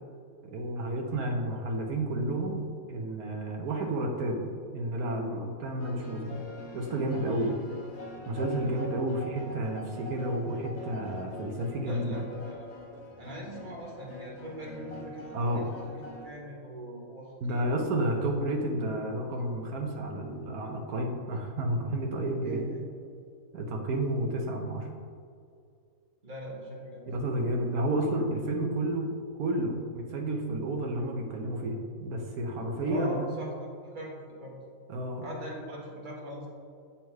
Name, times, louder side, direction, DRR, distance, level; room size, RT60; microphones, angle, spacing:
voice 1, 0.5-6.4 6.7-7.6 8.3-12.2 15.3-15.7 17.4-22.7 23.5-24.9 27.1-33.3 34.9-35.3, right 1 dB, 80° right, 2 dB, 1.4 m, -31 dB
sound 1, 5.8-16.3, left 1 dB, 55° left, 1.2 m, -44 dB
voice 2, 7.2-7.5 11.8-12.7 13.2-17.8 22.4-22.8 26.2-27.3 32.9-34.1 34.4-34.5 35.2-36.5, right 1 dB, 35° right, -4 dB, 1.6 m, -41 dB
7.8 x 4.3 x 4.6 m, 2.3 s
omnidirectional pair, 1.5 m